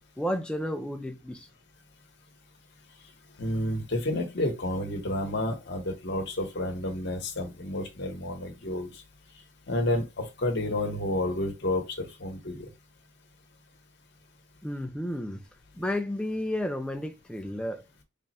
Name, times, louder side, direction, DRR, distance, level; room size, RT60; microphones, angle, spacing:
voice 1, 0.2-1.5 14.6-15.4 15.8-17.8, left 1 dB, 5° left, 0.4 m, -32 dB
voice 2, 3.4-8.9 9.7-11.8 12.2-12.7, left 1 dB, 50° left, 0.9 m, -30 dB
3.4 x 2.0 x 4.1 m
head